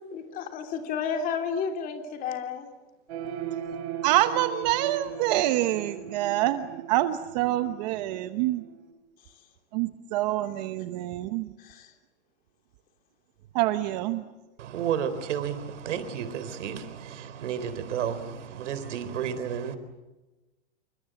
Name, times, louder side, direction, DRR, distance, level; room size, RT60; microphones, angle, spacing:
voice 1, 0.1-2.7 11.6-11.9, left 6 dB, 25° left, 3.2 m, -31 dB
sound 1, 3.1-8.9, right 9 dB, 65° right, 4.3 m, -38 dB
voice 2, 4.0-8.6 9.7-11.5 13.5-14.2, right 14 dB, 35° right, 1.0 m, -26 dB
voice 3, 14.6-19.8, right 8 dB, 90° right, 4.1 m, -32 dB
28.0 x 25.0 x 7.8 m
supercardioid pair, 170°, 35 cm